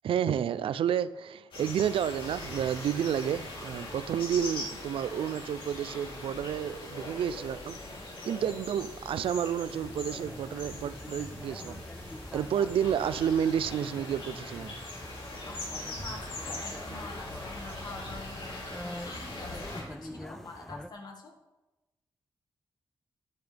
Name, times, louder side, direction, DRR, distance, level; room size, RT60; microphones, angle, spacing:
voice 1, 0.0-7.8 8.2-11.8 12.3-14.8, right 9 dB, 85° right, 16 dB, 0.4 m, -30 dB
sound 1, 1.5-19.8, left 2 dB, 75° left, 3.2 m, -41 dB
sound 2, 9.7-20.9, left 1 dB, 5° left, 0.3 m, -45 dB
voice 2, 15.4-21.3, left 3 dB, 50° left, 2 dB, 1.7 m, -46 dB
12.0 x 9.9 x 3.4 m, 1.1 s
wide cardioid pair, 165°, 9 cm